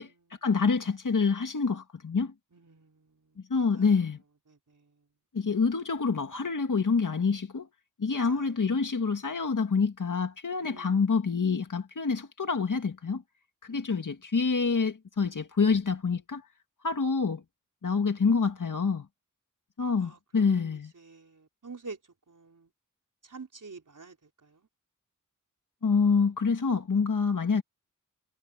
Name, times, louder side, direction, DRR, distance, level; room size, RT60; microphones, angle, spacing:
voice 1, 0.4-2.3 3.5-4.2 5.3-7.7 8.0-13.2 13.6-16.4 16.8-17.4 17.8-19.1 19.8-20.9 25.8-27.6, left 5 dB, 70° left, 2.0 m, -27 dB
voice 2, 2.5-3.9 4.5-4.9 8.1-8.5 10.6-11.0 13.7-14.1 20.0-22.0 22.3-22.7 23.2-24.2 24.4-24.6, right 4 dB, 70° right, 4.3 m, -48 dB
wide cardioid pair, 80°, 32 cm